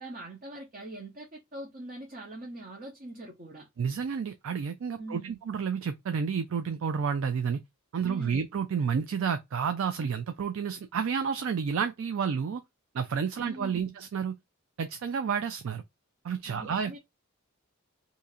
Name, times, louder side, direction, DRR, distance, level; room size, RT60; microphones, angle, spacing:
voice 1, 0.0-3.7 5.0-5.4 8.0-8.4 13.4-13.9 16.5-17.0, right 2 dB, 40° right, 0.8 m, -42 dB
voice 2, 3.8-7.6 7.9-12.6 12.9-14.3 14.8-15.8 16.2-16.9, right 6 dB, 65° right, 0.4 m, -30 dB
2.8 x 2.5 x 4.1 m
head